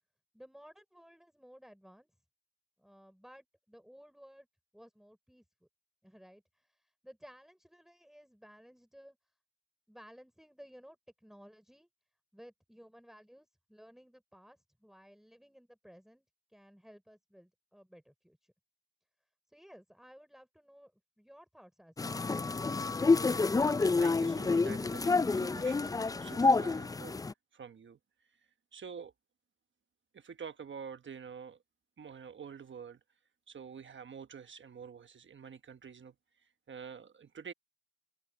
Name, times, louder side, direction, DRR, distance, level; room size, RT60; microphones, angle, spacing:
voice 1, 0.3-2.1 2.8-4.5 4.7-5.4 6.0-9.2 9.9-11.9 12.3-18.5 19.5-20.9 21.2-22.6, equal, ahead, 3.5 m, -57 dB
sound 1, 22.0-27.3, left 3 dB, 20° left, 0.3 m, -28 dB
voice 2, 23.8-25.9 26.2-27.2 27.5-28.0 28.7-29.1 30.1-31.6 32.0-33.0 33.5-36.1 36.7-37.5, right 6 dB, 65° right, 1.2 m, -47 dB
open air
cardioid pair, 60°, 21 cm